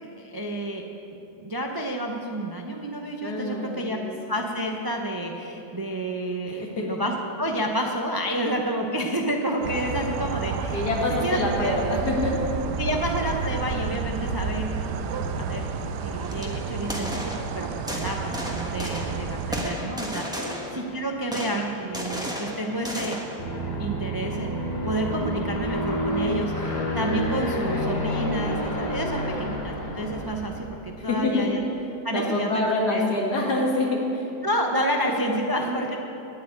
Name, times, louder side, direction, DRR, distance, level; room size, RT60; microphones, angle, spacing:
voice 1, 0.1-0.8 1.4-4.0 4.3-10.9 11.2-11.8 12.8-15.7 16.0-23.2 23.8-31.6 32.0-33.1 34.4-36.0, right 1 dB, 30° right, 1 dB, 0.4 m, -29 dB
voice 2, 3.2-4.1 6.4-6.9 10.7-12.3 20.3-20.5 29.1-29.2 31.0-31.5 32.1-34.3, left 2 dB, 75° left, -1 dB, 2.4 m, -26 dB
sound 1, 9.6-19.7, right 5 dB, 85° right, 1.3 m, -30 dB
sound 2, 16.2-16.5 16.8-17.5 17.9-19.2 19.5-20.9 21.3-23.4, equal, 5° right, 1.2 m, -33 dB
Aircraft, 23.4-30.7, equal, 25° left, 2.8 m, -29 dB
9.7 x 9.1 x 8.7 m, 3.0 s
omnidirectional pair, 1.7 m